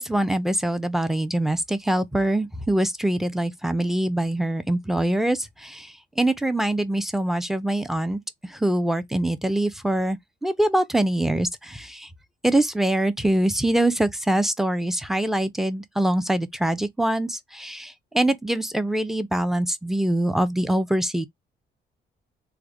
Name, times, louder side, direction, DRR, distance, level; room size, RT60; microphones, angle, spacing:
voice 1, 0.0-8.2 8.5-12.1 12.4-21.3, right 1 dB, ahead, 0.5 m, -24 dB
3.2 x 2.2 x 3.7 m
cardioid pair, 90°, 20 cm